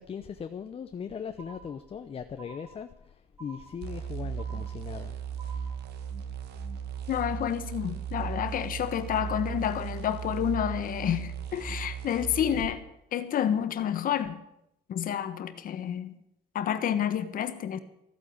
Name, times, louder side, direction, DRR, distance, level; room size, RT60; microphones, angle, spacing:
voice 1, 0.0-5.2, left 7 dB, 35° left, 0.8 m, -39 dB
sound 1, 1.4-2.1 2.4-3.1 3.4-4.1 4.4-5.1 5.4-6.1, right 4 dB, 15° right, 3.9 m, -51 dB
sound 2, 3.8-12.7, right 7 dB, 75° right, 1.8 m, -36 dB
voice 2, 7.1-12.8 13.1-14.4 14.9-16.2 16.5-17.8, left 9 dB, 55° left, 1.3 m, -29 dB
14.5 x 9.1 x 8.7 m
cardioid pair, 110°, 17 cm